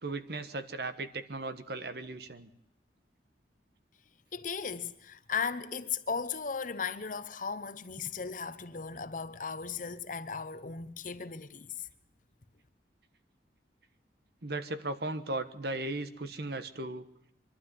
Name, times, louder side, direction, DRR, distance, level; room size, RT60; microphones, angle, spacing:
voice 1, 0.0-2.5 14.4-17.0, right 2 dB, 60° right, 1.3 m, -37 dB
voice 2, 4.3-11.9, left 6 dB, 50° left, 1.0 m, -36 dB
24.0 x 12.0 x 9.6 m
head